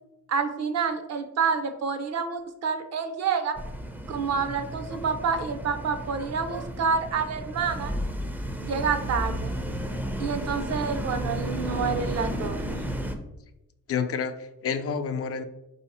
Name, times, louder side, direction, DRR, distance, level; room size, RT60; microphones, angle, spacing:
voice 1, 0.3-3.6 4.1-7.9 8.6-9.5 10.2-12.8, right 5 dB, 60° right, 7 dB, 0.6 m, -28 dB
sound 1, 3.5-13.2, equal, 5° right, 0.4 m, -33 dB
voice 2, 13.9-15.4, left 6 dB, 55° left, 9 dB, 0.4 m, -29 dB
4.1 x 2.8 x 4.1 m, 0.88 s
cardioid pair, 110°, 29 cm